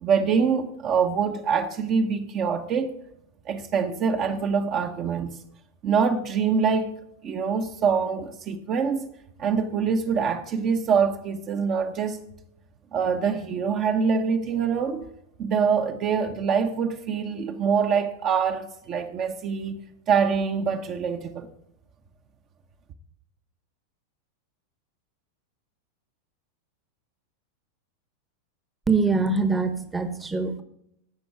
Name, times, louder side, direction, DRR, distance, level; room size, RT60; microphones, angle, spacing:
voice 1, 0.0-2.9 3.4-5.4 5.8-6.9 7.2-9.1 9.4-12.2 12.9-15.1 15.4-19.8 20.1-21.5, right 6 dB, 35° right, 0.9 m, -24 dB
voice 2, 28.9-30.6, right 4 dB, 10° right, 1.0 m, -24 dB
16.5 x 6.2 x 4.7 m
figure-of-eight pair, 90°, 0 cm